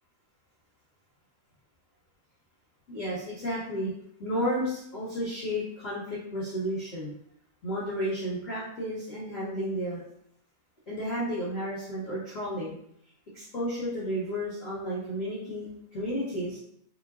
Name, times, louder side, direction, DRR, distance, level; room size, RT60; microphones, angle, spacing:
voice 1, 2.9-3.9 4.2-7.1 7.6-10.0 10.9-12.7 13.3-15.7 15.9-16.6, equal, 65° left, -9 dB, 0.8 m, -32 dB
5.6 x 3.2 x 2.5 m, 0.72 s
omnidirectional pair, 3.5 m